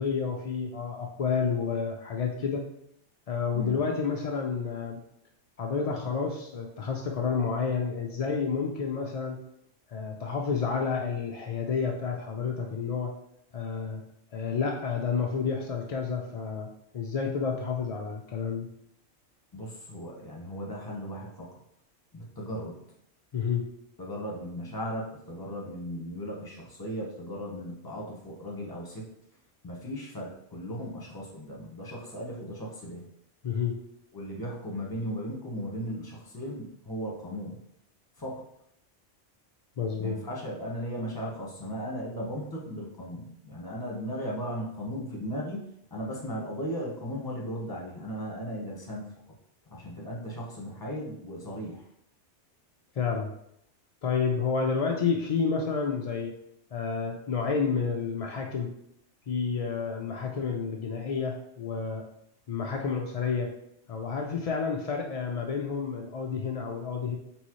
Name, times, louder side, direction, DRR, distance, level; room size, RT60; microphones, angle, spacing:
voice 1, 0.0-2.6 3.3-5.0 5.6-9.4 9.9-13.1 13.5-14.0 14.3-16.7 16.9-18.7 23.3-23.7 33.4-33.8 39.8-40.2 53.0-53.3 54.0-56.4 56.7-58.7 59.3-62.0 62.5-63.5 63.9-67.2, left 5 dB, 65° left, 1 dB, 0.3 m, -30 dB
voice 2, 19.5-21.6 22.1-22.8 24.0-29.0 29.6-33.1 34.1-37.6 38.2-38.4 40.0-49.1 49.7-51.9, equal, 20° left, -3 dB, 1.0 m, -37 dB
4.1 x 3.8 x 3.1 m, 0.75 s
omnidirectional pair, 1.3 m